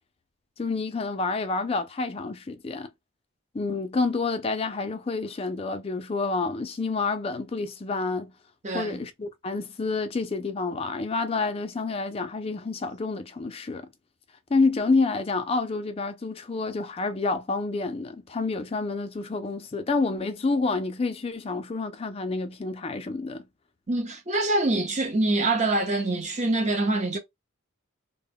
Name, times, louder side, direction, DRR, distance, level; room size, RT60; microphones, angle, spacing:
voice 1, 0.6-2.9 3.5-8.3 8.7-13.9 14.5-23.4, left 3 dB, 25° left, 0.3 m, -28 dB
voice 2, 8.6-9.0 23.9-27.2, right 2 dB, 35° right, 0.6 m, -25 dB
2.1 x 2.1 x 3.4 m
head